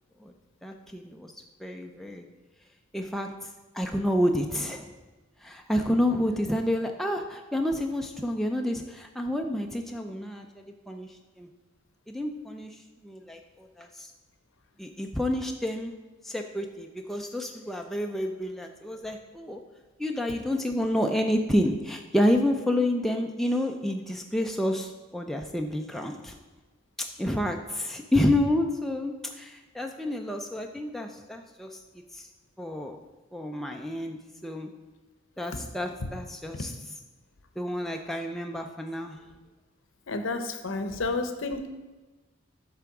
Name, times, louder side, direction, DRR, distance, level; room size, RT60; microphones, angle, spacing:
voice 1, 0.6-1.3 1.6-2.3 2.9-3.5 3.7-4.9 5.4-11.1 11.4-11.5 12.1-12.8 13.0-14.1 14.8-15.9 16.2-19.6 20.0-26.4 27.0-31.8 32.1-32.3 32.6-33.0 33.3-34.7 35.4-36.7 37.6-39.2, left 1 dB, ahead, 2 dB, 0.3 m, -29 dB
voice 2, 40.1-41.7, left 3 dB, 65° left, 8 dB, 0.7 m, -30 dB
8.2 x 3.5 x 5.9 m, 1.2 s
head